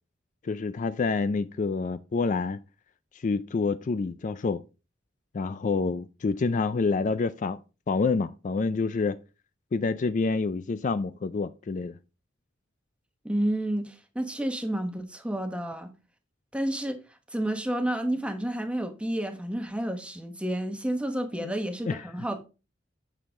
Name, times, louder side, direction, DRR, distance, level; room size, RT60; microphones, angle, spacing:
voice 1, 0.4-2.6 3.1-4.6 5.3-7.6 7.9-9.2 9.7-12.0 21.4-21.5 21.9-22.0, left 4 dB, 40° left, 0.4 m, -27 dB
voice 2, 13.2-15.9 16.5-17.0 17.3-22.4, right 1 dB, 5° right, 1.1 m, -30 dB
8.4 x 6.5 x 3.6 m
head